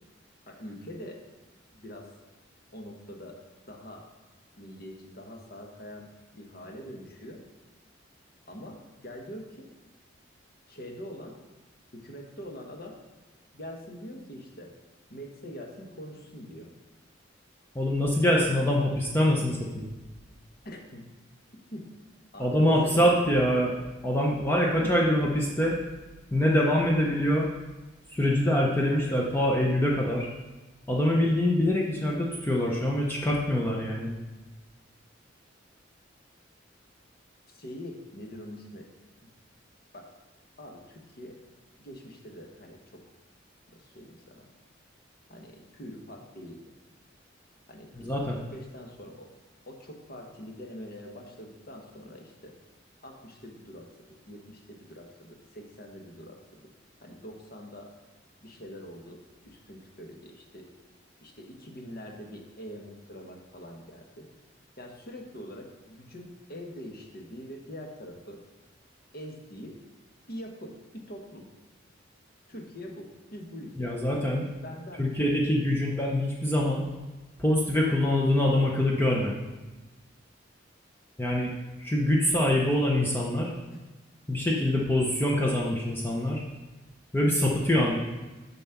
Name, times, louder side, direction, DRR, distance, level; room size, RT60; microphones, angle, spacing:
voice 1, 0.5-1.2 1.7-2.1 2.7-3.4 3.7-4.1 4.6-7.4 8.5-9.7 10.7-11.4 11.9-13.0 13.5-14.7 15.1-16.7 20.6-21.1 21.7-21.9 22.3-23.4 24.8-25.0 37.5-38.9 39.2-39.3 39.9-40.1 40.6-41.4 41.8-43.0 43.7-44.5 45.3-46.7 47.7-49.3 49.6-52.5 53.0-56.7 57.0-57.9 58.4-60.7 61.2-64.3 64.8-68.4 69.1-69.8 70.3-71.4 72.5-74.1 74.6-75.1, equal, 50° left, 1 dB, 1.1 m, -44 dB
voice 2, 17.7-19.9 22.4-23.7 24.0-25.8 26.3-27.5 28.1-30.3 30.9-34.1 48.0-48.4 73.8-74.5 75.0-76.9 77.4-79.5 81.2-81.5 81.8-83.5 84.3-86.4 87.1-88.0, left 1 dB, 10° left, -3 dB, 0.6 m, -24 dB
7.2 x 4.1 x 5.8 m, 1.2 s
head